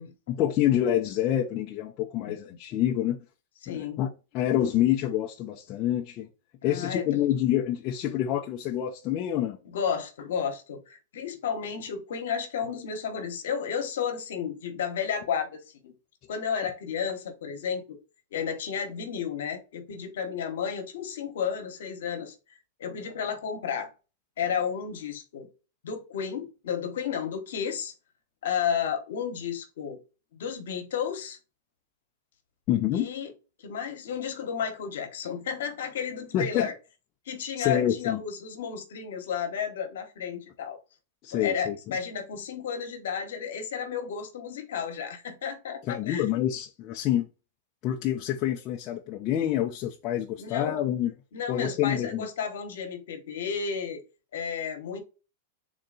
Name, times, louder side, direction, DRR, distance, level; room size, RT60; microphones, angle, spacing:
voice 1, 0.3-3.2 3.7-6.3 6.6-9.6 32.7-33.1 36.3-36.7 37.6-38.2 41.2-41.8 45.9-47.3 47.8-51.1 51.5-52.3, left 11 dB, 40° left, 0.5 m, -27 dB
voice 2, 3.6-4.0 6.6-7.3 9.6-15.9 16.3-18.0 18.3-22.3 22.8-23.9 24.4-25.5 25.8-27.9 28.4-30.0 30.3-31.4 32.9-33.3 33.6-36.7 37.3-40.8 41.3-46.4 50.4-50.8 51.3-54.0 54.3-55.0, left 7 dB, 75° left, 1.0 m, -32 dB
3.9 x 2.2 x 3.9 m
hypercardioid pair, 120°, 0 cm